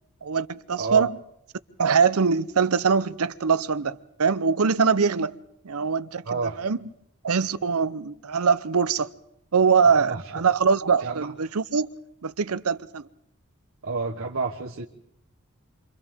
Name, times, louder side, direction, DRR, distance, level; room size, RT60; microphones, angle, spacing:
voice 1, 0.2-1.2 1.8-5.4 5.6-6.8 7.2-9.1 9.5-11.9 12.2-13.1, right 5 dB, 85° right, 0.7 m, -23 dB
voice 2, 6.3-6.6 10.0-10.2 11.0-11.3 13.8-14.8, right 4 dB, 65° right, 1.1 m, -29 dB
28.5 x 25.5 x 3.6 m
head